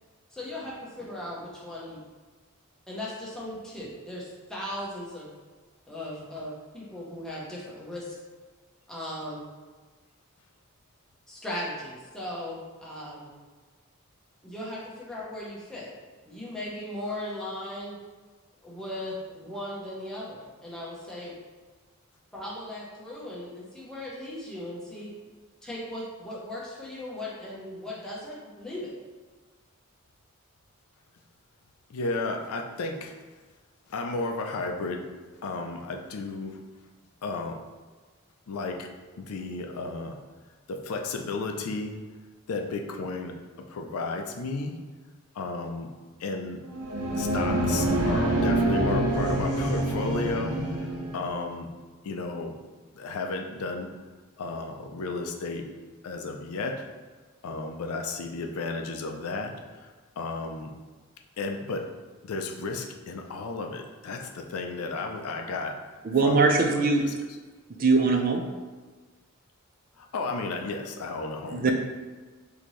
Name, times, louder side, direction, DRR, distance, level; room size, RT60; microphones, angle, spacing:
voice 1, 0.3-2.0 2.9-5.3 5.9-8.1 8.9-9.4 11.3-13.3 14.4-15.9 16.3-18.0 18.6-21.3 22.3-25.1 25.6-28.9, left 1 dB, 5° left, -6 dB, 0.8 m, -37 dB
voice 2, 31.9-33.2 33.9-35.0 35.4-36.6 37.2-37.6 38.5-38.9 39.2-40.2 40.7-42.0 42.5-44.8 45.3-45.9 46.2-46.6 47.1-51.7 52.0-52.6 52.9-53.9 54.4-55.7 56.0-56.9 57.4-60.7 61.4-61.9 62.2-65.8 66.2-66.5 70.0-71.7, left 3 dB, 85° left, 4 dB, 0.4 m, -33 dB
sound 1, 46.6-51.3, right 1 dB, 85° right, 0.6 m, -26 dB
voice 3, 66.0-67.1 67.8-68.4 71.5-71.7, right 3 dB, 40° right, 3 dB, 0.3 m, -21 dB
4.2 x 2.8 x 3.1 m, 1.4 s
head